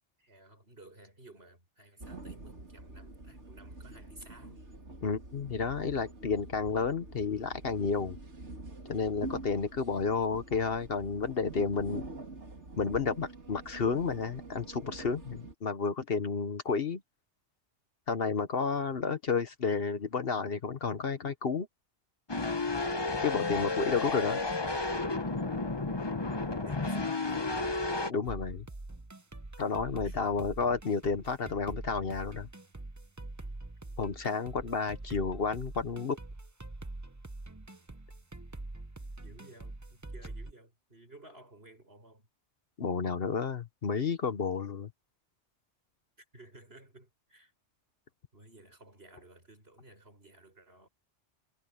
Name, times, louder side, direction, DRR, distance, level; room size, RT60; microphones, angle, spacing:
voice 1, 0.2-4.7 26.3-27.7 30.0-30.2 35.1-35.2 39.2-42.3 46.2-47.5 48.3-50.9, right 2 dB, 60° right, 7.2 m, -55 dB
sound 1, 2.0-15.5, right 3 dB, 75° right, 3.4 m, -46 dB
voice 2, 5.0-8.2 8.9-12.0 12.8-17.0 18.1-21.7 23.2-24.4 28.1-28.7 29.6-32.5 34.0-36.2 42.8-44.9, left 5 dB, 55° left, 1.2 m, -31 dB
sound 2, 22.3-28.1, left 3 dB, 25° left, 1.0 m, -32 dB
sound 3, 28.2-40.5, right 2 dB, 15° right, 0.9 m, -44 dB
omnidirectional pair, 1.2 m